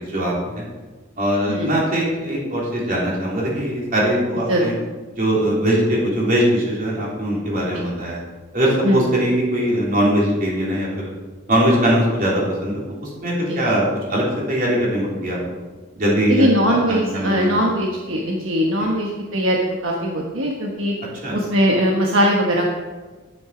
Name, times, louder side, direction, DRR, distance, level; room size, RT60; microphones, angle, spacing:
voice 1, 0.1-0.6 1.2-4.7 5.2-8.2 8.5-11.1 11.5-15.6 16.0-17.7 18.8-18.9 21.2-21.4, equal, 45° right, -5 dB, 3.7 m, -21 dB
voice 2, 16.3-20.9 21.3-22.7, equal, 70° right, -1 dB, 1.3 m, -20 dB
10.5 x 9.1 x 5.0 m, 1.3 s
head